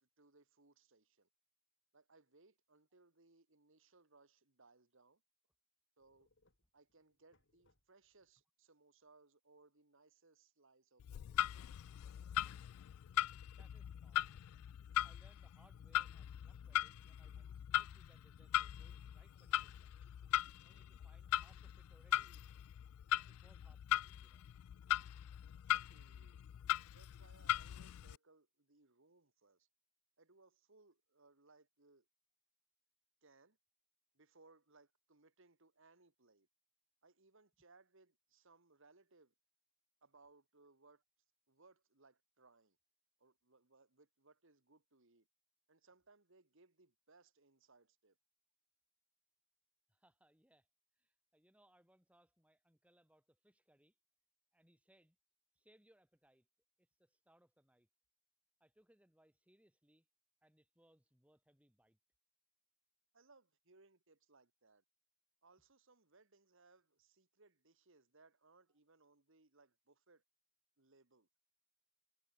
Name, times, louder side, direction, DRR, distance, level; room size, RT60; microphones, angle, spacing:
voice 1, 0.0-1.3 1.9-5.2 6.0-6.3 6.7-11.5 25.7-26.4 26.9-29.7 30.2-32.1 33.2-33.6 34.1-36.5 37.0-39.3 40.0-41.0 41.5-42.8 43.2-45.3 45.7-48.2 63.1-64.8 65.4-70.2 70.8-71.3, right 3 dB, 60° right, 2.1 m, -68 dB
sound 1, 6.0-8.3 12.8-15.1, left 2 dB, 55° left, 3.1 m, -75 dB
Clock, 11.0-28.2, left 12 dB, 80° left, 0.3 m, -40 dB
voice 2, 13.5-14.2 15.0-20.0 20.6-22.7 23.3-24.4 49.9-50.7 51.0-54.0 54.5-55.2 55.5-56.5 56.8-57.9 58.6-60.1 60.4-62.0, right 1 dB, 5° right, 1.9 m, -72 dB
head